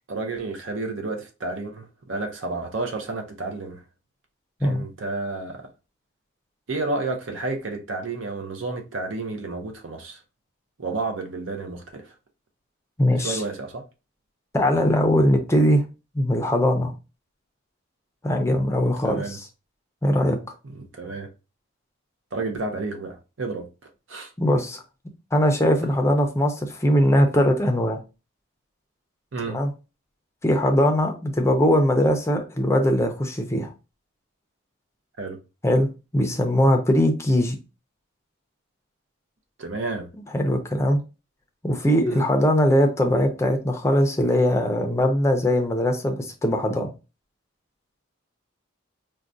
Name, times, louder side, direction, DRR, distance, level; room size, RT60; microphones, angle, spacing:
voice 1, 0.0-3.8 4.6-5.7 6.7-10.2 10.8-12.1 13.2-13.8 18.6-18.7 19.0-19.4 20.9-21.3 22.3-23.7 24.1-24.3 29.3-29.6 35.2-35.4 39.6-40.1 42.0-42.3, right 3 dB, 70° right, 0.6 m, -31 dB
voice 2, 13.0-13.4 14.5-15.8 16.1-16.9 18.2-19.5 20.0-20.4 24.4-24.8 25.3-28.0 29.5-29.7 30.4-33.7 35.6-35.9 36.1-37.6 40.3-41.0 41.6-46.9, equal, 15° left, 0.5 m, -21 dB
4.6 x 2.2 x 2.5 m
head